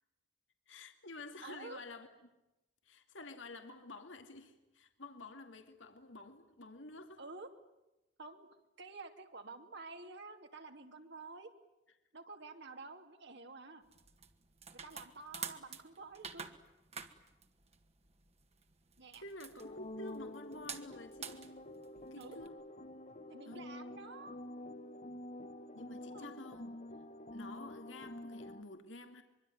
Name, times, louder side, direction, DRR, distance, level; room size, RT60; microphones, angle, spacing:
voice 1, 0.7-2.1 2.8-7.2 19.2-21.4 22.1-22.6 23.5-23.6 25.7-26.8 27.3-29.2, left 2 dB, 85° left, 6 dB, 2.4 m, -50 dB
voice 2, 1.4-1.8 7.2-7.5 8.2-8.5 8.8-11.5 12.1-13.8 14.8-16.5 19.0-19.2 22.1-22.4 23.3-24.4 26.0-26.3, right 3 dB, 65° right, 5 dB, 3.0 m, -50 dB
sound 1, 13.8-22.5, right 7 dB, 35° right, 2.0 m, -49 dB
sound 2, 19.6-28.6, left 1 dB, 40° left, 1.2 m, -48 dB
24.5 x 24.0 x 9.5 m, 0.95 s
head